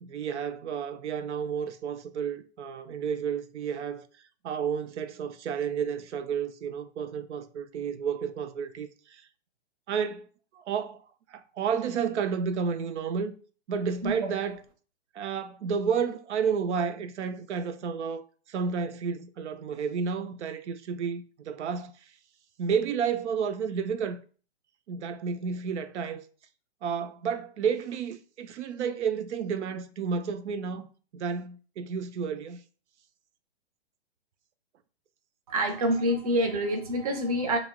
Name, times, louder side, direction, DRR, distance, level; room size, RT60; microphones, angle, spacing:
voice 1, 0.0-4.1 4.4-9.2 9.9-10.3 10.5-11.0 11.3-13.3 13.7-14.6 15.1-18.2 18.5-21.9 22.6-24.2 24.9-26.2 26.8-30.9 31.1-32.6, right 6 dB, 85° right, 0.5 m, -31 dB
voice 2, 35.5-37.6, right 1 dB, 35° right, 0.5 m, -27 dB
2.7 x 2.0 x 3.4 m
hypercardioid pair, 170°, 33 cm